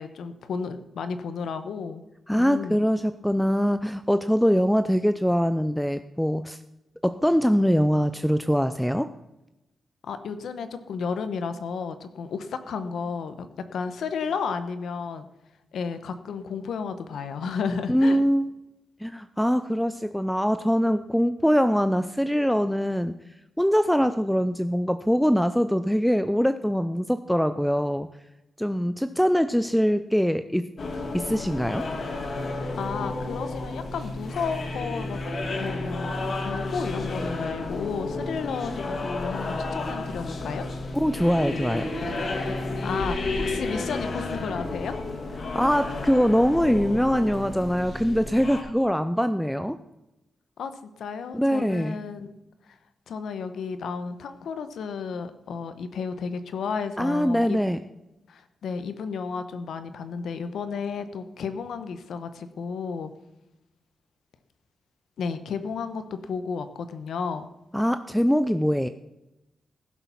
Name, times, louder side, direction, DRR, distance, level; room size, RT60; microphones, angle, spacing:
voice 1, 0.0-2.0 2.3-2.8 10.0-13.5 13.7-15.3 15.7-18.2 32.8-35.2 35.6-36.1 36.4-40.7 42.0-42.3 42.8-45.0 50.6-50.7 51.0-52.4 53.1-57.6 58.3-63.1 65.2-67.5, left 5 dB, 85° left, 11 dB, 1.1 m, -32 dB
voice 2, 2.3-6.6 7.0-9.1 17.9-18.5 19.0-23.1 23.6-28.1 28.6-30.7 31.1-31.9 40.9-41.9 45.4-49.8 51.3-52.0 57.0-57.8 67.7-68.9, equal, ahead, 11 dB, 0.4 m, -23 dB
sound 1, 30.8-48.6, left 2 dB, 50° left, 1.9 m, -31 dB
15.5 x 7.3 x 5.8 m, 0.95 s
wide cardioid pair, 140°, 0 cm